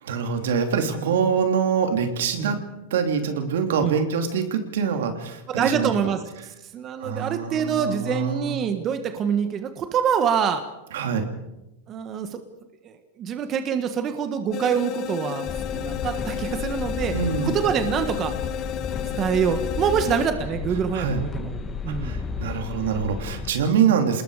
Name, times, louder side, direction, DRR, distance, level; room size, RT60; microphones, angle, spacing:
voice 1, 0.0-2.6 2.9-5.9 7.0-8.6 10.9-11.3 17.1-17.6 20.9-21.2 22.0-24.2, right 6 dB, 80° right, 6 dB, 3.0 m, -24 dB
voice 2, 5.5-6.2 6.7-10.6 11.9-12.4 13.2-17.1 17.4-18.3 19.2-21.5 21.8-22.2, right 7 dB, 30° right, 8 dB, 1.6 m, -25 dB
sound 1, 14.5-20.3, left 11 dB, 35° left, 1.1 m, -32 dB
sound 2, 15.5-23.5, left 5 dB, 15° left, 1.5 m, -32 dB
28.0 x 20.0 x 5.0 m, 0.97 s
supercardioid pair, 150°, 0 cm